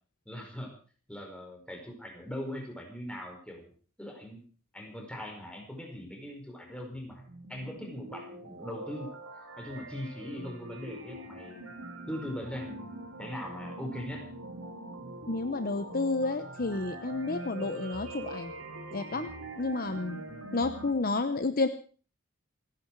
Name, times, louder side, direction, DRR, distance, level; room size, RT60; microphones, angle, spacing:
voice 1, 0.3-0.8 1.1-3.7 4.0-4.4 4.7-7.2 7.5-9.2 9.6-11.7 12.1-14.3, left 1 dB, 5° left, 2 dB, 5.1 m, -40 dB
sound 1, 6.9-20.9, right 2 dB, 70° right, 3.4 m, -43 dB
voice 2, 15.3-18.5 18.9-19.3 19.6-20.2 20.5-21.7, left 3 dB, 45° left, 10 dB, 0.9 m, -30 dB
28.5 x 10.5 x 4.7 m, 0.40 s
head